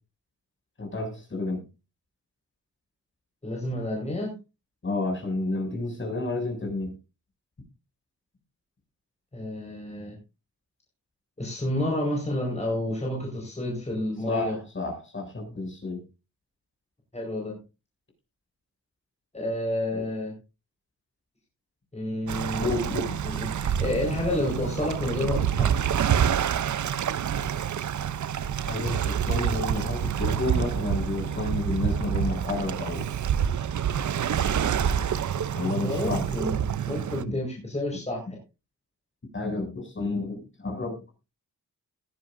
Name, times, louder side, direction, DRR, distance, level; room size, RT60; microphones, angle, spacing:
voice 1, 0.8-1.6 4.8-6.9 14.3-16.0 19.9-20.1 22.6-23.2 28.6-33.1 35.5-36.3 37.2-37.4 39.3-41.0, left 2 dB, 35° left, 2 dB, 6.9 m, -30 dB
voice 2, 3.4-4.3 9.3-10.2 11.4-14.6 17.1-17.6 19.3-20.3 21.9-25.8 35.8-36.6 36.9-38.4, left 1 dB, 20° left, -1 dB, 4.9 m, -30 dB
Waves surf, 22.3-37.2, right 8 dB, 60° right, 0.7 m, -27 dB
19.5 x 11.0 x 2.6 m, 0.29 s
wide cardioid pair, 110°, 34 cm